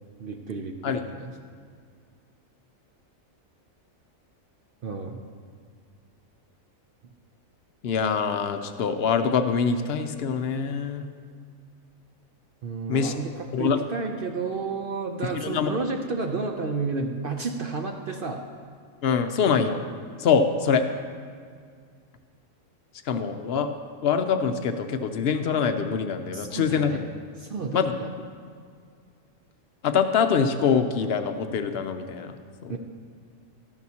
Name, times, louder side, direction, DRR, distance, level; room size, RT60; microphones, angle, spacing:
voice 1, 0.2-1.3 4.8-5.2 12.6-18.4 26.3-27.0 27.4-28.1 32.7-32.8, right 4 dB, 55° right, 3 dB, 0.6 m, -31 dB
voice 2, 7.8-11.0 12.9-13.1 13.5-13.8 15.3-15.7 19.0-19.8 20.2-20.8 23.1-23.7 24.0-27.1 27.7-27.9 29.8-32.4 32.6-32.7, left 6 dB, 65° left, 8 dB, 0.7 m, -24 dB
13.0 x 10.5 x 2.8 m, 2.1 s
omnidirectional pair, 1.4 m